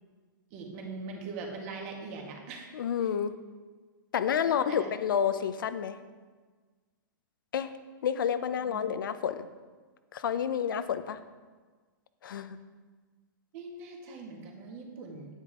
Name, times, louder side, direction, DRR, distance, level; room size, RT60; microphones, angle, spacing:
voice 1, 0.5-2.7 4.7-4.9 8.6-8.8 13.5-15.3, right 3 dB, 40° right, 0 dB, 2.2 m, -41 dB
voice 2, 2.7-3.3 4.1-6.0 7.5-7.7 8.0-9.5 10.1-11.2 12.2-12.6, left 8 dB, 75° left, 12 dB, 0.7 m, -29 dB
9.8 x 9.1 x 3.8 m, 1.4 s
hypercardioid pair, 145°, 11 cm